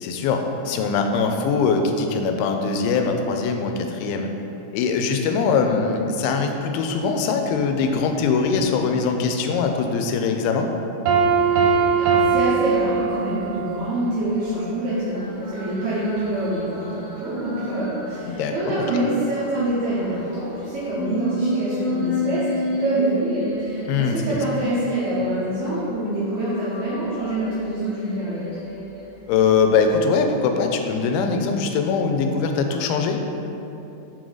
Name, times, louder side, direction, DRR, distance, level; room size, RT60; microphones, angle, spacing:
voice 1, 0.0-4.3 4.7-10.7 18.3-18.9 23.9-24.4 29.3-33.2, left 5 dB, 85° left, 5 dB, 2.4 m, -22 dB
Piano, 11.1-13.6, right 6 dB, 90° right, 2.5 m, -20 dB
sound 1, 11.2-13.2 13.7-18.2 18.7-25.7 26.2-29.1 29.6-29.9, equal, 65° left, 1.8 m, -32 dB
voice 2, 12.0-28.5, right 1 dB, 75° right, -9 dB, 1.8 m, -26 dB
6.1 x 4.4 x 3.9 m, 2.9 s
omnidirectional pair, 4.3 m